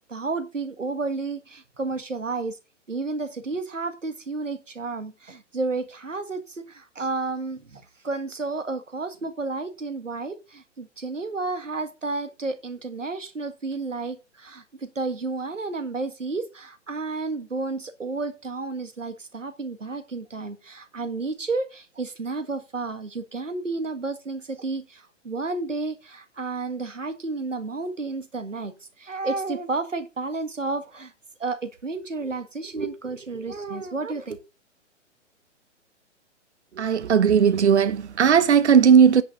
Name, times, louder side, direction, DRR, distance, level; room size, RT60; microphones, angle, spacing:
voice 1, 0.1-2.6 2.9-31.1 31.4-34.4, right 3 dB, 80° right, 1.7 m, -31 dB
voice 2, 36.8-39.2, right 7 dB, 65° right, 1.1 m, -17 dB
10.0 x 4.9 x 6.7 m
figure-of-eight pair, 120°, 37 cm